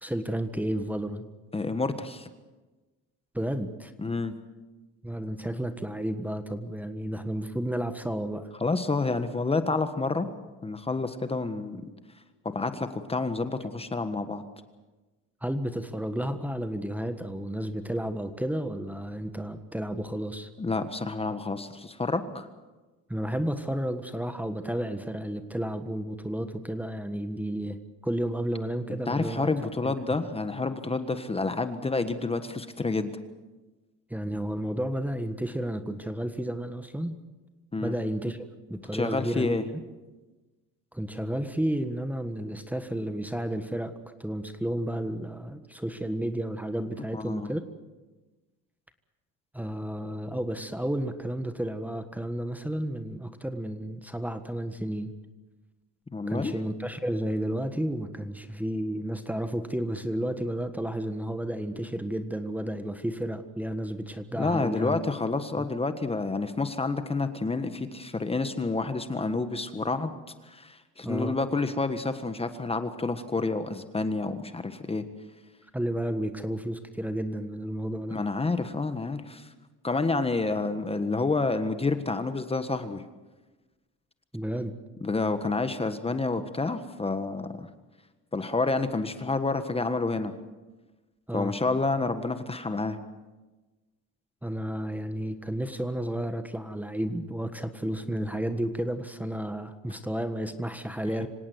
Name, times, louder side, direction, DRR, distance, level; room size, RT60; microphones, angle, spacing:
voice 1, 0.0-1.2 3.3-3.9 5.0-8.5 15.4-20.5 23.1-29.9 34.1-37.1 37.8-39.6 40.9-47.6 49.5-55.1 56.3-65.0 65.6-65.7 71.0-71.4 75.7-78.2 84.3-84.7 91.3-91.5 94.4-101.3, right 1 dB, 5° right, 9 dB, 1.5 m, -32 dB
voice 2, 1.5-2.3 4.0-4.3 8.6-10.3 10.6-11.8 12.4-14.4 20.6-22.5 28.9-33.1 37.7-37.9 38.9-39.6 47.1-47.5 56.1-56.5 64.4-70.1 70.4-75.0 78.1-79.5 79.8-83.0 85.0-87.7 88.3-90.3 91.3-93.0 101.2-101.3, left 3 dB, 15° left, 10 dB, 1.5 m, -29 dB
26.0 x 17.5 x 8.1 m, 1.2 s
cardioid pair, 105°, 33 cm